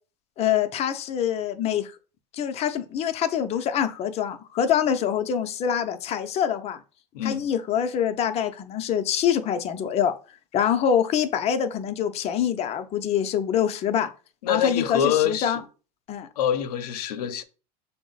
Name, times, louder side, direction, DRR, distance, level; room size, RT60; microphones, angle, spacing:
voice 1, 0.4-1.9 2.3-6.8 7.2-10.2 10.5-14.1 14.5-15.6 16.1-16.3, left 9 dB, 35° left, 0.5 m, -25 dB
voice 2, 14.4-15.6 16.4-17.4, left 9 dB, 90° left, 0.5 m, -25 dB
5.8 x 2.0 x 3.8 m
supercardioid pair, 115°, 20 cm